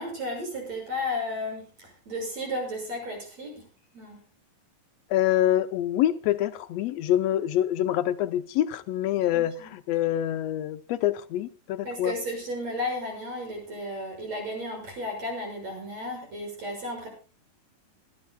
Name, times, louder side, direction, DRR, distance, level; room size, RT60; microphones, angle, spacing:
voice 1, 0.0-3.7 3.9-4.2 9.3-9.7 11.8-17.1, left 1 dB, 50° right, 7.5 m, -34 dB
voice 2, 5.1-12.2, left 12 dB, 80° left, 1.5 m, -26 dB
26.5 x 12.0 x 2.3 m
omnidirectional pair, 3.9 m